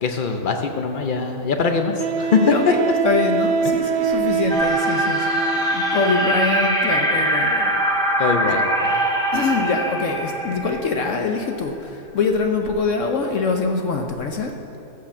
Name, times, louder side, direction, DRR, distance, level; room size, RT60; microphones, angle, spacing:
voice 1, 0.0-2.4 2.7-2.8 8.2-9.0, left 5 dB, 80° left, 5 dB, 0.4 m, -22 dB
Wind instrument woodwind instrument, 0.7-0.8 2.0-6.1, right 5 dB, 90° right, 0.5 m, -24 dB
voice 2, 2.4-7.7 8.9-14.5, left 4 dB, 60° left, 3 dB, 1.0 m, -24 dB
sound 1, 4.5-11.3, right 1 dB, 5° left, 1.1 m, -22 dB
14.5 x 4.9 x 7.2 m, 2.9 s
omnidirectional pair, 1.7 m